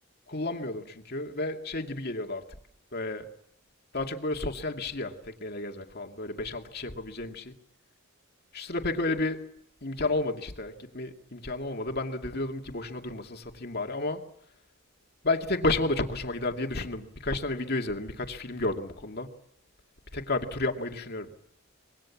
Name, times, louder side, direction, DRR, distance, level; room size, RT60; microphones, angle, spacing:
voice 1, 0.3-2.4 2.9-3.3 3.9-7.5 8.5-9.4 9.8-14.2 15.2-19.3 20.1-21.3, left 2 dB, 45° left, 2.4 m, -31 dB
26.5 x 22.5 x 7.4 m
head